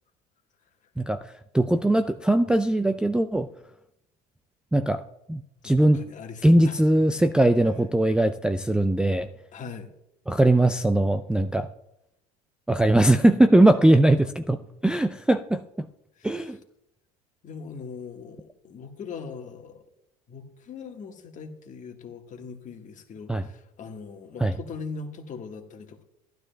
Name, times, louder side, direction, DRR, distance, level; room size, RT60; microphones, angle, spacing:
voice 1, 1.0-3.5 4.7-5.0 5.3-6.0 6.4-9.3 10.3-11.7 12.7-15.9 16.2-16.6 23.3-23.4 24.4-24.5, right 1 dB, 5° right, 6 dB, 0.4 m, -20 dB
voice 2, 5.6-6.8 9.5-9.9 13.7-13.8 16.2-16.4 17.4-19.8 20.3-26.0, left 5 dB, 40° left, 4 dB, 1.5 m, -40 dB
15.0 x 12.0 x 2.2 m, 0.82 s
hypercardioid pair, 85°, 19 cm